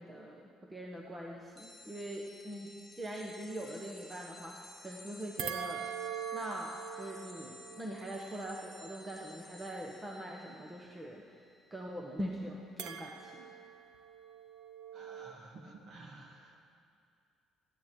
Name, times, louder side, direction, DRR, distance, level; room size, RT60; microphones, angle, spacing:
voice 1, 0.0-5.9 6.3-11.2 11.7-13.5, equal, 10° right, 0 dB, 1.1 m, -43 dB
sound 1, 1.6-13.7, left 2 dB, 15° left, 1.0 m, -55 dB
sound 2, 5.4-9.9 12.8-15.3, right 8 dB, 75° right, 0.9 m, -43 dB
voice 2, 14.9-16.6, right 2 dB, 40° right, 2 dB, 1.9 m, -52 dB
13.5 x 9.5 x 9.4 m, 2.4 s
cardioid pair, 160°, 0 cm